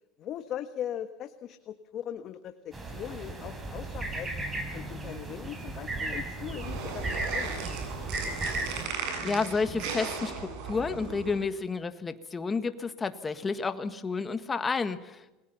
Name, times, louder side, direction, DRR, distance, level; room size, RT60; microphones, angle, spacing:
voice 1, 0.2-4.3 4.7-8.3, left 10 dB, 45° left, 9 dB, 1.4 m, -40 dB
sound 1, 2.7-8.9, right 2 dB, 20° right, 4.7 m, -35 dB
sound 2, 6.4-11.4, right 5 dB, 60° right, 7.8 m, -37 dB
voice 2, 9.2-15.4, left 4 dB, 20° left, 10 dB, 1.6 m, -31 dB
29.0 x 21.5 x 5.8 m, 1.0 s
supercardioid pair, 135°, 0 cm